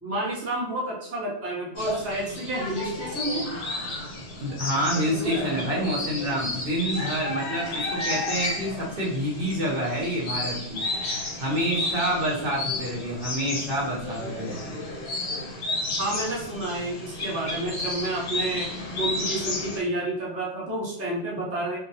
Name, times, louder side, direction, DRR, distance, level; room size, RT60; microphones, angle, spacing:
voice 1, 0.0-3.5 16.0-18.7 19.0-21.8, right 1 dB, 20° right, -5 dB, 0.5 m, -30 dB
sound 1, 1.8-19.8, left 2 dB, 75° left, 1.0 m, -32 dB
voice 2, 4.4-10.8 11.4-14.8, equal, 60° right, -3 dB, 0.8 m, -28 dB
2.3 x 2.0 x 2.6 m, 0.78 s
omnidirectional pair, 1.2 m